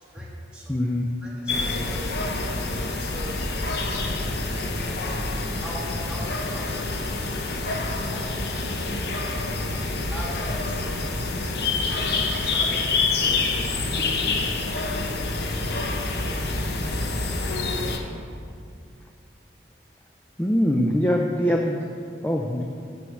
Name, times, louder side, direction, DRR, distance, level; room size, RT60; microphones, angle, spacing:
voice 1, 0.1-0.8 1.2-2.0 2.7-3.5 4.8-5.1 5.6-7.7 8.1-8.3 8.5-8.6 10.1-11.2 12.4-12.8 13.2-14.1 17.8-18.0, right 1 dB, 5° right, -7 dB, 1.7 m, -42 dB
voice 2, 0.7-1.1 20.4-21.8 22.2-22.6, equal, 10° left, 1 dB, 0.4 m, -23 dB
sound 1, 1.5-18.0, left 3 dB, 60° left, 0.7 m, -27 dB
7.1 x 6.2 x 6.2 m, 2.4 s
head